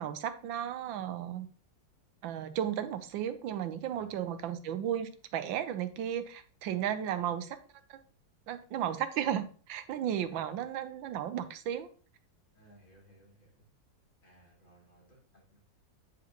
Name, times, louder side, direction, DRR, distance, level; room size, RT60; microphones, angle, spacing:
voice 1, 0.0-1.5 2.2-7.6 7.9-8.0 8.5-11.9, right 10 dB, 85° right, 11 dB, 1.5 m, -34 dB
voice 2, 10.1-10.6 12.5-13.7 14.2-15.6, right 1 dB, 25° left, -4 dB, 3.0 m, -60 dB
9.2 x 5.0 x 2.9 m, 0.40 s
omnidirectional pair, 2.1 m